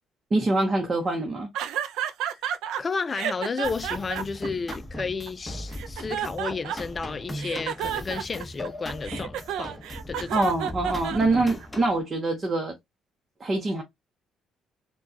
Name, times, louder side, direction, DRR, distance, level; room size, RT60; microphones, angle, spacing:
voice 1, 0.3-1.5 10.3-12.7 13.4-13.8, right 2 dB, 30° right, 0.9 m, -24 dB
sound 1, 1.5-2.8 3.1-5.3 5.7-7.0 7.4-11.7, right 9 dB, 90° right, 0.4 m, -31 dB
voice 2, 2.8-9.7 10.1-10.4, left 4 dB, 30° left, 0.5 m, -32 dB
sound 2, 3.6-12.0, left 1 dB, 10° left, 1.1 m, -38 dB
4.4 x 2.3 x 2.7 m
cardioid pair, 115°, 0 cm